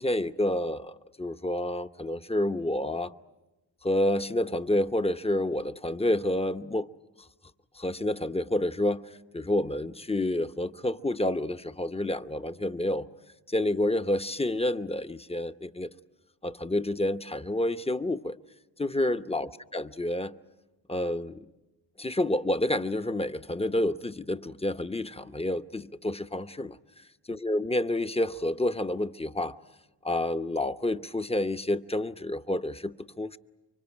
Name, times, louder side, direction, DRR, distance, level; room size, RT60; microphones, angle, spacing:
voice 1, 0.0-3.1 3.8-6.9 7.7-9.0 9.3-13.1 13.5-15.9 16.4-18.4 18.8-20.3 20.9-21.5 22.0-26.8 27.3-29.5 30.0-33.4, left 1 dB, 15° left, 0.9 m, -29 dB
25.5 x 24.0 x 8.8 m
cardioid pair, 40°, 46 cm